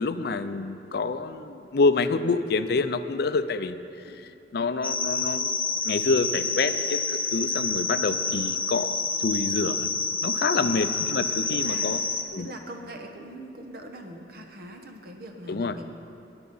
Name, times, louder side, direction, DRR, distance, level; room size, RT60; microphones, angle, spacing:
voice 1, 0.0-3.8 4.0-9.9 10.2-12.0 12.3-12.5 15.5-15.8, left 4 dB, 60° left, 11 dB, 0.5 m, -27 dB
sound 1, 4.8-12.2, left 4 dB, 10° left, 1.0 m, -28 dB
voice 2, 10.6-10.9 11.5-11.9 12.4-15.9, right 1 dB, 60° right, 4 dB, 1.2 m, -41 dB
20.5 x 7.0 x 5.5 m, 2.7 s
head